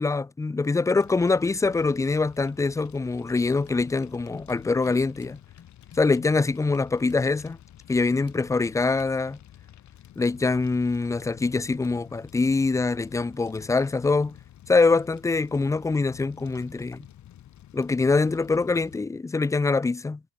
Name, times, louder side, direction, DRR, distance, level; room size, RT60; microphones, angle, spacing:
voice 1, 0.0-5.4 6.0-7.6 7.9-9.4 10.2-14.4 14.7-17.1 17.7-20.2, left 3 dB, 10° left, 0.4 m, -24 dB
Fire, 1.0-19.0, left 11 dB, 70° left, 2.5 m, -50 dB
sound 1, 3.6-9.2, left 8 dB, 50° left, 3.4 m, -54 dB
cardioid pair, 90°, 30 cm